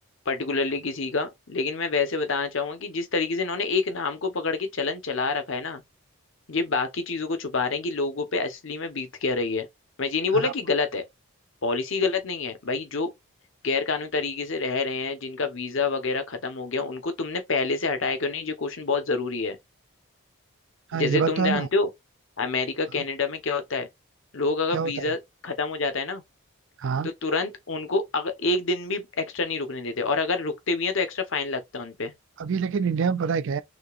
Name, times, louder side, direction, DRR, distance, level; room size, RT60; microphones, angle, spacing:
voice 1, 0.3-5.8 6.5-9.7 10.0-11.0 11.6-13.1 13.6-19.6 20.9-21.9 22.4-23.9 24.3-26.2 27.0-32.1, left 4 dB, 60° left, 0.9 m, -27 dB
voice 2, 20.9-21.7 24.7-24.9 26.8-27.1 32.4-33.6, right 6 dB, 55° right, 0.4 m, -25 dB
6.2 x 2.8 x 2.4 m
head